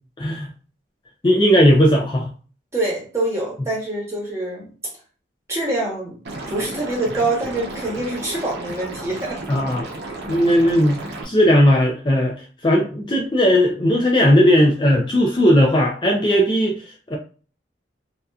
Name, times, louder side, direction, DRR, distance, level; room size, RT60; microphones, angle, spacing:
voice 1, 0.2-0.5 1.2-2.3 9.5-9.9 10.3-11.0 11.2-17.2, equal, 25° left, -1 dB, 0.4 m, -17 dB
voice 2, 2.7-4.7 5.5-6.2 6.5-9.4, right 2 dB, 15° right, -4 dB, 0.9 m, -25 dB
Liquid, 6.2-11.2, right 2 dB, 70° right, 0.6 m, -33 dB
2.7 x 2.3 x 2.3 m, 0.37 s
head